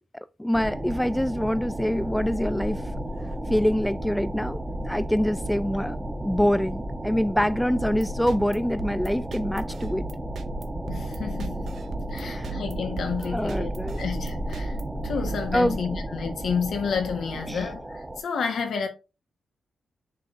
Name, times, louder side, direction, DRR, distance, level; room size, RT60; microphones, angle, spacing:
voice 1, 0.4-2.8 3.5-10.1 12.2-12.6 13.2-14.0 15.5-16.0 17.5-17.7, equal, 5° left, 0.3 m, -25 dB
sound 1, 0.5-18.2, right 1 dB, 20° right, 1.1 m, -33 dB
sound 2, 7.7-15.9, right 6 dB, 75° right, 0.5 m, -38 dB
voice 2, 10.9-11.7 12.1-13.7 14.0-14.8 15.0-18.9, left 6 dB, 75° left, 1.4 m, -30 dB
9.8 x 3.7 x 2.6 m
cardioid pair, 60°, 0 cm